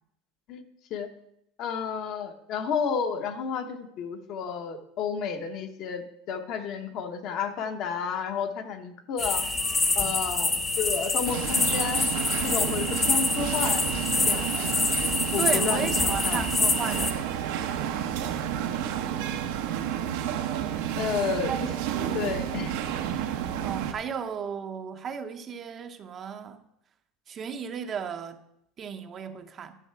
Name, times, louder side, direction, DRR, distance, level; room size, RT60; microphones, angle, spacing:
voice 1, 1.6-9.4 9.9-12.0 12.4-13.8 14.2-14.7 15.3-16.4 21.0-21.7 22.1-22.7, left 6 dB, 50° left, 1.0 m, -31 dB
sound 1, 9.2-17.1, left 3 dB, 20° left, 1.0 m, -26 dB
sound 2, 11.2-23.9, right 9 dB, 80° right, 1.0 m, -30 dB
voice 2, 15.4-17.2 21.5-21.6 23.6-26.6 27.3-28.4 28.8-29.8, right 7 dB, 35° right, 0.7 m, -34 dB
11.0 x 6.5 x 4.7 m
supercardioid pair, 130°, 0 cm